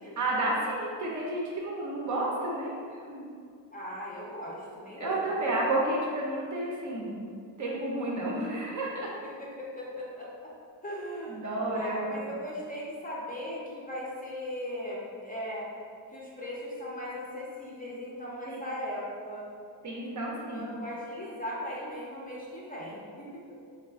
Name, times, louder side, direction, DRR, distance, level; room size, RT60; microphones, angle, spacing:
voice 1, 0.2-3.2 5.0-7.2 7.6-9.1 11.3-12.1 18.4-18.6 19.8-20.7, right 1 dB, 40° right, -4 dB, 0.6 m, -31 dB
voice 2, 3.7-5.4 9.2-10.5 10.8-11.4 11.7-15.7 16.1-19.5 20.5-23.4, equal, 20° left, -6 dB, 0.5 m, -38 dB
3.4 x 2.3 x 2.3 m, 2.3 s
cardioid pair, 85°, 46 cm